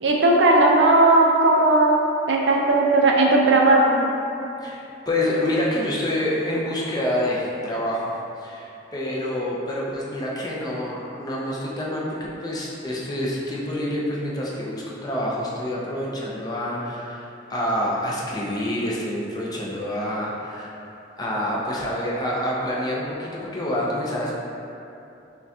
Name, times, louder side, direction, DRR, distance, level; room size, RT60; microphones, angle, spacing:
voice 1, 0.0-2.0 2.3-4.0, right 2 dB, 70° right, -1 dB, 0.5 m, -17 dB
voice 2, 4.6-20.7 21.2-24.3, left 1 dB, 20° left, -4 dB, 0.5 m, -27 dB
5.8 x 2.2 x 2.7 m, 2.8 s
head